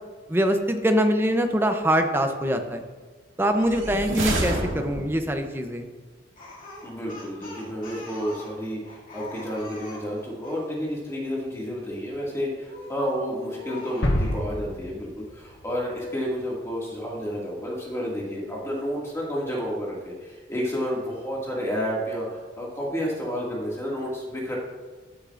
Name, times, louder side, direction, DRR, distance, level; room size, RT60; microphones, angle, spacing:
voice 1, 0.3-2.8 3.4-5.9, equal, 10° right, 6 dB, 0.6 m, -23 dB
sound 1, 3.5-5.3, right 1 dB, 90° right, 1.9 m, -28 dB
Speech, 6.4-10.7 12.7-13.1 13.6-14.5, left 2 dB, 45° left, 2.4 m, -42 dB
voice 2, 6.8-22.3 22.6-24.6, equal, 15° left, -4 dB, 2.1 m, -30 dB
sound 2, 14.0-15.9, equal, 75° left, 1.4 m, -27 dB
14.0 x 8.3 x 2.5 m, 1.4 s
head